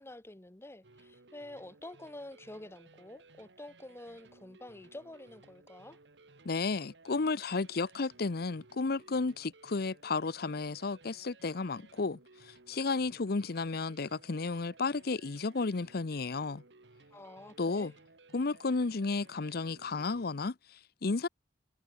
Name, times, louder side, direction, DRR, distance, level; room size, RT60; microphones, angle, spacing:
voice 1, 0.0-6.0 17.1-17.9, left 1 dB, 15° left, 0.9 m, -48 dB
sound 1, 0.8-20.3, right 3 dB, 75° right, 1.9 m, -59 dB
voice 2, 6.4-16.6 17.6-17.9 18.3-21.3, left 3 dB, 60° left, 0.7 m, -33 dB
head